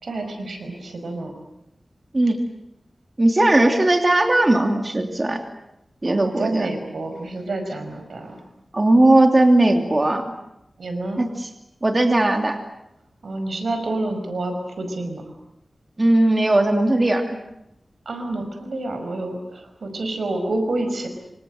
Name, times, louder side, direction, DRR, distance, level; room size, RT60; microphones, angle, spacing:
voice 1, 0.0-1.3 6.0-8.4 10.8-11.2 13.2-15.2 18.1-21.1, right 2 dB, 85° right, 6 dB, 5.4 m, -28 dB
voice 2, 3.2-5.4 6.0-6.7 8.7-10.2 11.2-11.5 11.8-12.6 16.0-17.4, right 1 dB, 30° right, 5 dB, 2.8 m, -18 dB
26.5 x 26.0 x 7.8 m, 0.85 s
wide cardioid pair, 85°, 0 cm